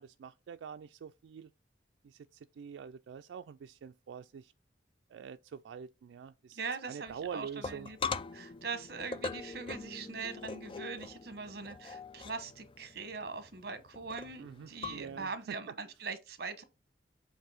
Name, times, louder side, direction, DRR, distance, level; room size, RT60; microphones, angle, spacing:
voice 1, 0.0-1.5 2.0-4.5 5.1-6.6 6.9-7.9 14.4-15.8, right 7 dB, 85° right, 0.3 m, -45 dB
voice 2, 6.5-8.0 8.3-16.6, right 4 dB, 55° right, 1.0 m, -41 dB
sound 1, 7.1-15.3, left 4 dB, 30° left, 0.3 m, -42 dB
7.6 x 2.7 x 4.8 m
head